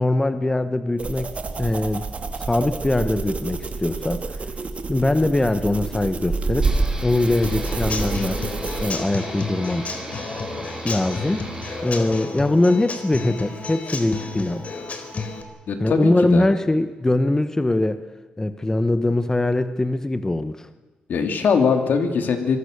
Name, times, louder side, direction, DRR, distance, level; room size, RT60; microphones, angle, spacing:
voice 1, 0.0-2.1 2.4-4.2 4.9-6.7 7.0-8.4 8.8-9.9 10.8-11.5 11.8-14.6 15.8-18.0 18.4-20.7, left 2 dB, 15° left, 11 dB, 1.2 m, -22 dB
sound 1, 1.0-8.9, right 3 dB, 45° right, 2.3 m, -28 dB
sound 2, 6.6-11.9, right 2 dB, 20° right, 6.5 m, -37 dB
Human voice / Acoustic guitar / Drum, 7.4-15.4, left 4 dB, 45° left, 3.7 m, -32 dB
voice 2, 15.7-16.4 21.1-22.6, left 5 dB, 70° left, 6 dB, 3.0 m, -21 dB
24.5 x 21.0 x 6.8 m, 1.3 s
cardioid pair, 75°, 3 cm